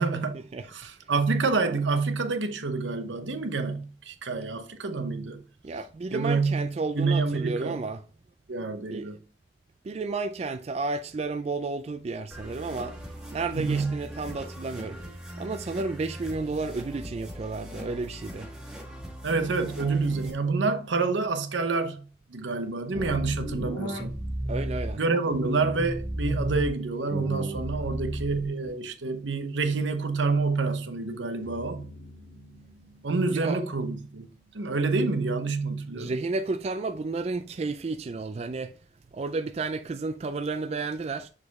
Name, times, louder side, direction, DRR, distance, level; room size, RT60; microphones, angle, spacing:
voice 1, 0.0-0.4 0.7-5.4 6.1-7.8 8.5-9.2 13.5-13.9 19.2-22.0 22.3-24.2 24.9-31.9 33.0-34.3 34.5-36.2, right 3 dB, 85° right, 0.9 m, -28 dB
voice 2, 5.6-8.0 8.9-9.1 9.8-13.0 13.3-15.0 15.4-18.5 24.5-25.0 33.3-33.6 35.9-38.7 39.1-41.3, right 3 dB, 35° right, 0.3 m, -32 dB
sound 1, 12.3-20.3, equal, 5° right, 1.4 m, -41 dB
sound 2, 22.9-24.9 25.3-26.7 27.1-28.7, right 1 dB, 25° left, 2.5 m, -33 dB
sound 3, 31.4-35.8, left 1 dB, 75° left, 2.5 m, -51 dB
6.4 x 4.9 x 3.5 m
head